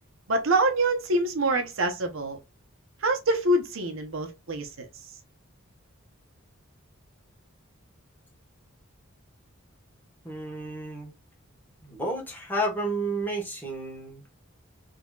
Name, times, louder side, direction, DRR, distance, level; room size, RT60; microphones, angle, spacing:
voice 1, 0.3-2.4 3.0-4.9, right 2 dB, 65° right, 0.9 m, -25 dB
voice 2, 10.2-11.1 11.8-14.3, right 1 dB, 10° left, 1.2 m, -31 dB
3.8 x 2.9 x 2.3 m
head